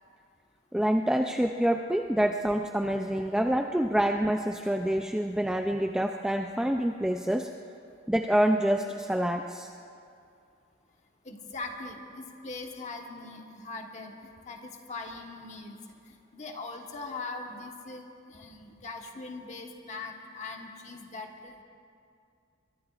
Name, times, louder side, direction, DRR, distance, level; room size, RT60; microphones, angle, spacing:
voice 1, 0.7-7.5 8.1-9.7, right 1 dB, 5° right, 3 dB, 0.3 m, -27 dB
voice 2, 11.2-15.8 16.1-21.6, left 3 dB, 35° left, 2 dB, 1.2 m, -41 dB
23.0 x 23.0 x 2.4 m, 2.4 s
head